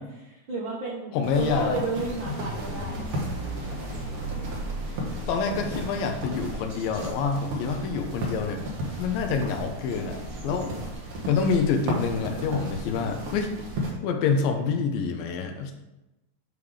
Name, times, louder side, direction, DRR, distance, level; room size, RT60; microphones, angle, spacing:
voice 1, 0.2-3.0, right 3 dB, 85° right, -6 dB, 1.0 m, -32 dB
voice 2, 1.1-1.8 5.3-8.6 9.0-10.2 10.4-10.7 11.3-13.5 14.0-15.7, left 5 dB, 85° left, 4 dB, 2.5 m, -27 dB
sound 1, 1.2-13.9, right 1 dB, 55° right, 1.9 m, -34 dB
sound 2, 2.2-7.3, right 1 dB, 30° right, 1.7 m, -36 dB
9.7 x 3.5 x 4.9 m, 0.97 s
omnidirectional pair, 4.0 m